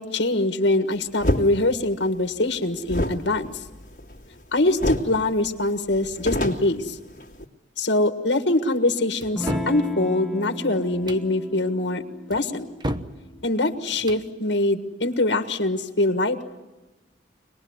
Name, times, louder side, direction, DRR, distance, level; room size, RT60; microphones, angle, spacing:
voice 1, 0.0-3.5 4.5-7.0 7.8-12.0 12.3-12.7 13.4-16.4, left 2 dB, 75° left, 7 dB, 1.7 m, -23 dB
sound 1, 1.2-1.5 2.9-4.4 4.8-5.2 5.5-5.6 5.9-7.4, left 1 dB, 45° left, 2.6 m, -26 dB
sound 2, 9.2-9.8 10.9-11.3 12.3-13.2 13.9-14.3, equal, 25° right, 1.0 m, -31 dB
Electric guitar / Strum, 9.4-14.5, equal, ahead, 1.6 m, -36 dB
25.5 x 20.0 x 9.7 m, 1.1 s
head